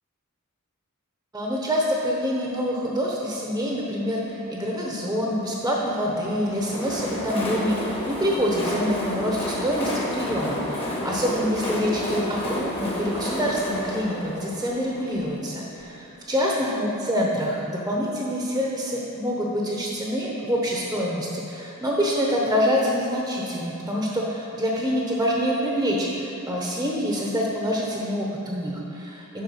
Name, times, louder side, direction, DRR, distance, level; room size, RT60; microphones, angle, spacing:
voice 1, 1.3-29.4, equal, 15° right, -2 dB, 0.9 m, -26 dB
Train, 6.2-15.9, left 1 dB, 25° left, 1.4 m, -30 dB
8.9 x 5.6 x 5.8 m, 2.7 s
head